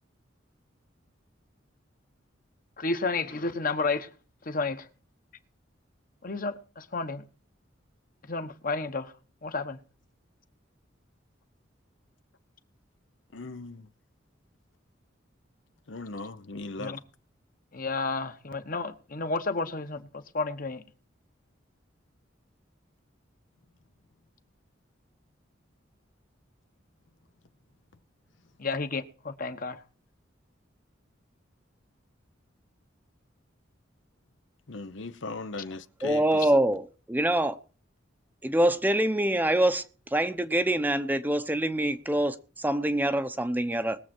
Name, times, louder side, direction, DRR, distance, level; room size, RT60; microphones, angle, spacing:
voice 1, 2.8-4.1 4.4-4.9 6.2-7.3 8.2-9.1 9.4-9.8 16.8-17.0 17.7-20.8 28.6-29.8, left 3 dB, 45° left, 1.2 m, -31 dB
voice 2, 13.3-13.9 15.9-17.0 34.7-36.5, left 3 dB, 75° left, 0.8 m, -38 dB
voice 3, 36.0-37.6 38.4-39.8 40.1-44.0, right 1 dB, 10° right, 0.7 m, -25 dB
21.0 x 7.7 x 4.4 m
head